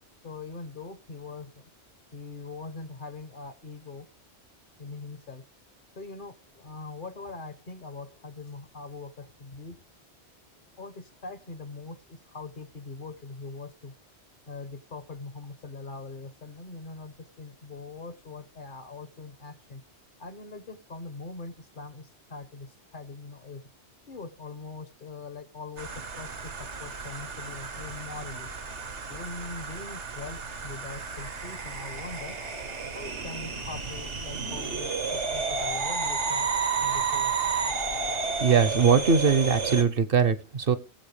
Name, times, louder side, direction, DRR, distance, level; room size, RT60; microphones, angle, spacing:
voice 1, 0.2-1.7 2.1-4.1 4.8-5.4 6.0-9.8 10.8-13.9 14.5-19.8 20.2-23.6 24.1-28.5 29.1-32.4 32.9-36.5 36.8-37.3, left 3 dB, 50° left, 1.1 m, -42 dB
sound 1, 25.8-39.8, right 5 dB, 90° right, 1.8 m, -32 dB
voice 2, 38.4-40.8, right 6 dB, 60° right, 1.0 m, -21 dB
20.5 x 7.7 x 3.3 m
omnidirectional pair, 1.1 m